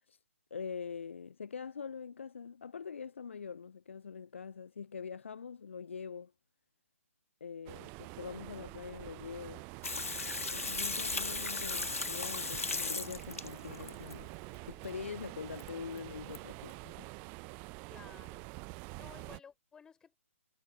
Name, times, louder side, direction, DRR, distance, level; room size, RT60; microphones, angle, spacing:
voice 1, 0.5-6.3 7.4-9.7 10.3-14.3 14.7-17.1, left 6 dB, 60° left, 0.7 m, -44 dB
sound 1, 7.7-19.4, right 32 dB, 20° right, 0.7 m, -47 dB
Water tap faucet / Sink (filling or washing), 9.8-14.1 15.6-15.7 16.0-16.1 16.3-16.4, left 3 dB, 75° left, 1.8 m, -36 dB
voice 2, 17.9-18.5 18.9-20.2, left 6 dB, 10° left, 4.4 m, -55 dB
figure-of-eight pair, 130°, 8 cm